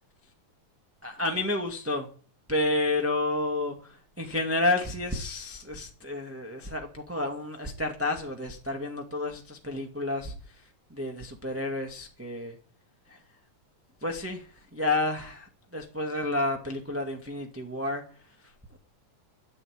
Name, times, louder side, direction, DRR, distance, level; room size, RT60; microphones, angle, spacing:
voice 1, 1.0-2.1 2.5-10.3 10.9-12.5 13.1-13.2 14.0-14.5 14.7-18.0, left 2 dB, 5° right, 2 dB, 1.3 m, -30 dB
14.0 x 9.0 x 8.8 m, 0.42 s
omnidirectional pair, 3.7 m